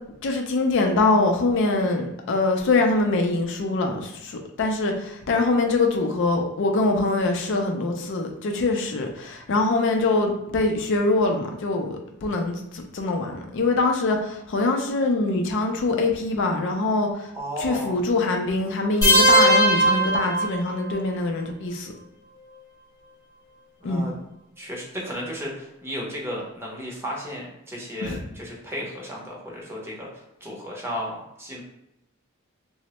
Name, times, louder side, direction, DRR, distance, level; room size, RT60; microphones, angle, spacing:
voice 1, 0.2-17.3 17.6-21.9 23.8-24.1 28.0-28.2, left 2 dB, 60° left, 0.4 m, -23 dB
voice 2, 17.3-18.0 23.8-24.1 24.6-30.1 30.4-31.6, equal, 10° right, 0.7 m, -34 dB
sound 1, 19.0-21.0, right 1 dB, 15° left, 0.8 m, -18 dB
3.1 x 2.0 x 2.9 m
head